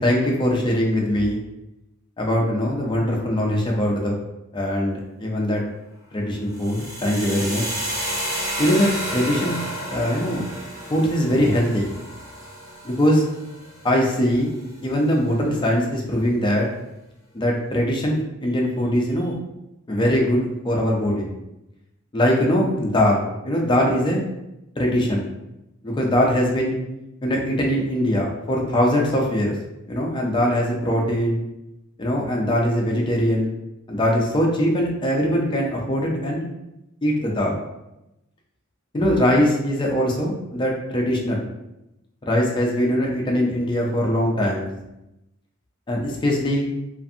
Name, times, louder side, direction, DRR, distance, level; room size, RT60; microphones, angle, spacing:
voice 1, 0.0-1.4 2.2-4.2 4.5-5.6 6.1-7.6 8.6-9.5 9.9-10.4 10.9-11.9 12.8-13.2 13.8-14.5 14.8-16.7 17.3-19.3 19.9-21.3 22.1-24.2 24.8-25.3 25.8-26.7 27.2-29.5 29.9-31.4 32.0-33.5 33.9-36.5 37.0-37.6 38.9-41.4 42.3-44.7 45.9-46.7, equal, 25° left, -1 dB, 0.4 m, -21 dB
sound 1, 6.5-14.5, equal, 15° right, 0.7 m, -31 dB
2.5 x 2.5 x 2.6 m, 0.92 s
head